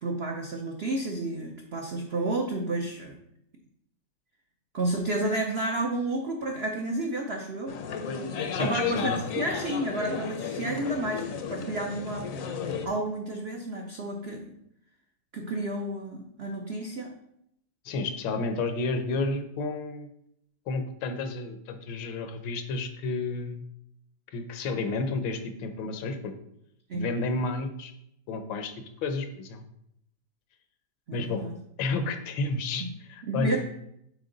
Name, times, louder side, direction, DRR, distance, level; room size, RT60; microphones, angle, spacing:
voice 1, 0.0-3.2 4.7-7.7 8.6-12.3 12.8-14.5 15.3-17.2 26.9-27.1 31.1-31.5 32.8-32.9 33.3-33.6, right 2 dB, 75° right, 1 dB, 0.5 m, -31 dB
sound 1, 7.7-12.9, left 6 dB, 60° left, 0.9 m, -33 dB
voice 2, 8.5-9.2 17.8-20.1 20.7-23.6 24.3-26.3 26.9-27.9 28.3-28.7 29.0-29.6 31.1-31.4 31.8-33.6, left 3 dB, 80° left, 7 dB, 1.5 m, -31 dB
7.8 x 4.3 x 3.9 m, 0.77 s
omnidirectional pair, 2.1 m